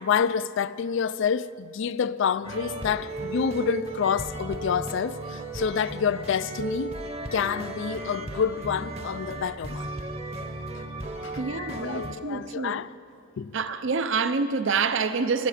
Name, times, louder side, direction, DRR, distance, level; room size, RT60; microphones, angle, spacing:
voice 1, 0.0-6.9 7.3-9.9 11.2-11.4 11.8-12.9 13.4-13.6, left 7 dB, 65° left, 0.4 m, -28 dB
sound 1, 2.4-12.1, right 2 dB, 30° right, 0.9 m, -35 dB
voice 2, 11.4-12.8 13.5-15.5, right 5 dB, 65° right, 0.6 m, -27 dB
17.0 x 13.0 x 5.0 m
head